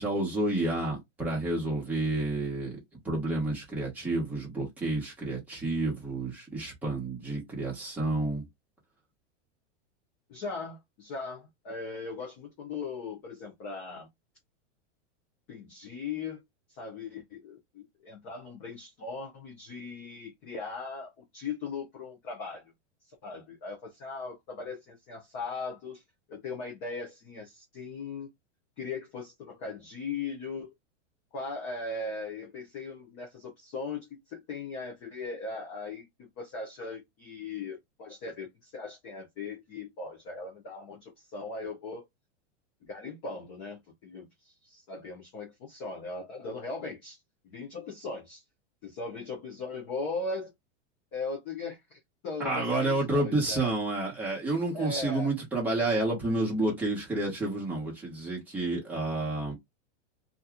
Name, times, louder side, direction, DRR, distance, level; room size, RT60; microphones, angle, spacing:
voice 1, 0.0-2.8 3.0-8.4 52.4-59.5, right 2 dB, 5° right, 0.9 m, -30 dB
voice 2, 10.3-14.1 15.5-16.4 16.7-22.6 23.1-26.0 26.3-28.3 28.8-30.7 31.3-42.1 42.8-47.2 47.4-48.4 48.8-50.5 51.1-53.7 54.7-55.3, left 4 dB, 15° left, 0.3 m, -39 dB
2.7 x 2.3 x 3.5 m
supercardioid pair, 165°, 36 cm